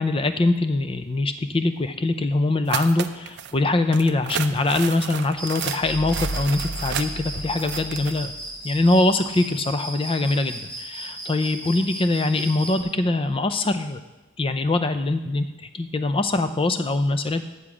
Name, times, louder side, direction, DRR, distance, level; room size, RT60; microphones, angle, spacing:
voice 1, 0.0-8.3 8.6-14.0 14.4-17.4, left 2 dB, 25° left, 10 dB, 0.4 m, -23 dB
sound 1, 2.7-3.5 3.9-8.2, right 8 dB, 50° right, 0.4 m, -32 dB
Cricket, 5.4-12.8, right 1 dB, 5° left, 1.0 m, -36 dB
sound 2, 5.8-9.2, right 1 dB, 65° left, 0.8 m, -35 dB
9.4 x 7.1 x 4.9 m, 1.1 s
head